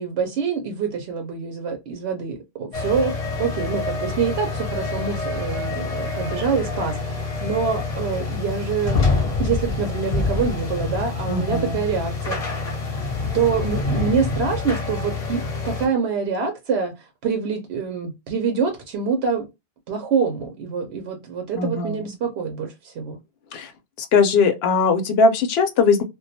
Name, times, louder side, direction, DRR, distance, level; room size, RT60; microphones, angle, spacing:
voice 1, 0.0-3.1 3.4-9.0 9.4-12.6 13.3-19.5 19.9-23.2, right 6 dB, 85° right, 0.8 m, -25 dB
sound 1, 2.7-15.9, left 3 dB, 40° left, 0.7 m, -26 dB
voice 2, 11.3-11.8 21.6-22.1 23.5-23.7 24.0-26.0, left 4 dB, 75° left, 0.8 m, -20 dB
2.2 x 2.2 x 2.6 m
omnidirectional pair, 1.1 m